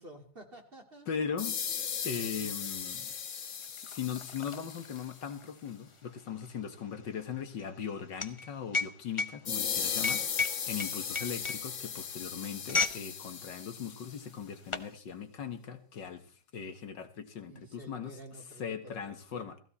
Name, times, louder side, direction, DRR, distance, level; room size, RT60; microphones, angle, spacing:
voice 1, 0.0-1.1 2.1-2.5 6.7-6.8 17.4-19.5, right 1 dB, 30° right, 3 dB, 3.0 m, -50 dB
voice 2, 1.1-1.6 2.0-3.1 3.8-16.2 16.5-18.2 18.6-19.6, left 7 dB, 75° left, 8 dB, 2.2 m, -39 dB
sound 1, 1.4-5.2 9.4-14.2, left 7 dB, 50° left, 1.3 m, -37 dB
sound 2, 2.7-2.8 3.1-13.1 13.4-13.6 14.3-14.9, left 4 dB, 25° left, 0.7 m, -35 dB
18.0 x 16.0 x 4.2 m, 0.43 s
omnidirectional pair, 2.0 m